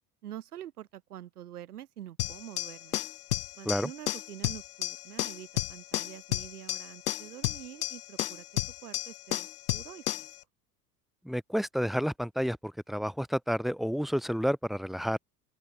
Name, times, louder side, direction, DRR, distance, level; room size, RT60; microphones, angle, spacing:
voice 1, 0.2-3.0 3.6-8.5 8.8-10.3, right 12 dB, 70° right, 5.7 m, -46 dB
sound 1, 2.2-10.4, left 13 dB, 70° left, 0.9 m, -33 dB
voice 2, 11.2-15.2, equal, ahead, 1.4 m, -30 dB
open air
figure-of-eight pair, 75°, 47 cm